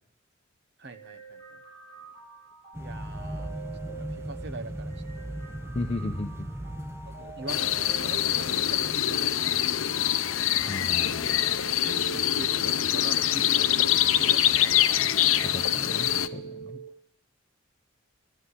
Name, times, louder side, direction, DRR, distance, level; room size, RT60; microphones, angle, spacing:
voice 1, 0.8-1.6 2.8-3.5 3.9-5.4 7.2-9.9 10.1-10.3 11.6-15.1 15.6-15.8 16.7-16.8, right 2 dB, 55° right, 11 dB, 1.0 m, -43 dB
sound 1, 0.9-16.9, right 4 dB, 30° right, 7.2 m, -44 dB
sound 2, 2.7-12.1 12.4-12.7 13.0-13.4 13.7-13.9, right 1 dB, 15° right, 0.8 m, -39 dB
voice 2, 5.7-6.5 10.7-11.3 15.4-16.8, left 2 dB, 30° left, 3 dB, 0.7 m, -35 dB
sound 3, 7.5-16.3, left 11 dB, 80° left, 0.7 m, -24 dB
12.5 x 11.5 x 9.7 m, 0.77 s
head